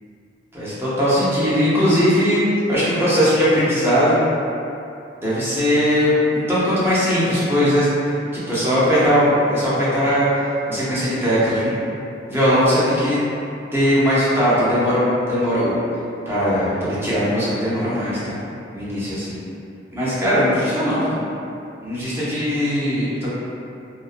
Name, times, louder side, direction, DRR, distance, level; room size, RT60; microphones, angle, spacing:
voice 1, 0.5-2.4 2.7-4.2 5.2-7.9 8.3-10.3 10.7-11.7 12.3-13.2 13.7-15.8 16.3-18.4 18.7-19.4 19.9-21.2 21.8-23.3, equal, 15° right, -11 dB, 0.6 m, -19 dB
2.4 x 2.1 x 2.5 m, 2.7 s
head